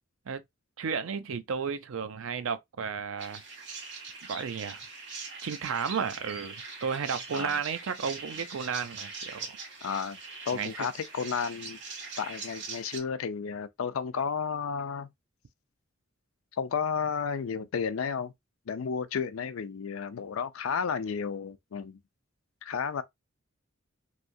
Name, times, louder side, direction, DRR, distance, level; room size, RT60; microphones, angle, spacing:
voice 1, 0.8-3.4 4.3-4.8 5.4-6.6 6.8-9.6 10.5-10.9, right 6 dB, 80° right, 0.5 m, -33 dB
sound 1, 3.2-13.0, right 4 dB, 60° right, 1.3 m, -42 dB
voice 2, 9.8-10.2 10.5-11.8 12.2-15.1 16.6-18.3 18.7-22.0 22.6-23.0, left 6 dB, 85° left, 0.4 m, -32 dB
3.2 x 2.7 x 2.6 m
head